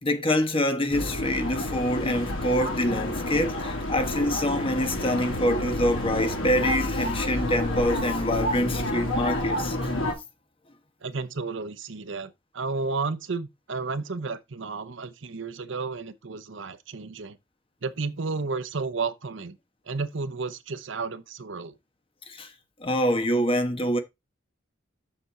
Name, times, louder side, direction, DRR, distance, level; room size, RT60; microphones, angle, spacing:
voice 1, 0.0-9.9 22.3-22.5 22.8-24.0, left 1 dB, 30° left, 1.3 m, -26 dB
sound 1, 0.9-10.1, left 1 dB, 85° left, 3.1 m, -29 dB
voice 2, 11.0-17.4 17.8-19.6 19.9-21.7, right 4 dB, 65° right, 0.8 m, -32 dB
6.9 x 6.6 x 4.2 m
head